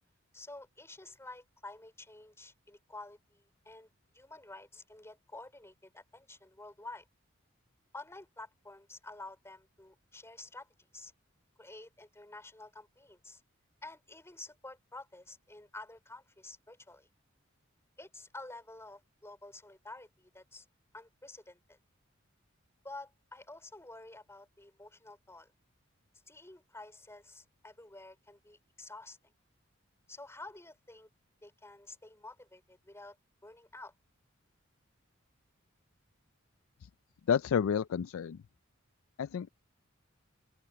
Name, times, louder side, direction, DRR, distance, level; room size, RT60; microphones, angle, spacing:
voice 1, 0.3-3.9 4.1-7.1 7.9-11.1 11.6-13.4 13.8-17.1 18.0-20.7 20.9-21.8 22.8-25.5 26.3-29.2 30.1-31.1 31.4-33.2 33.4-33.9, left 2 dB, 15° left, 4.6 m, -50 dB
voice 2, 37.3-38.4 39.2-39.5, left 7 dB, 80° left, 0.4 m, -30 dB
open air
head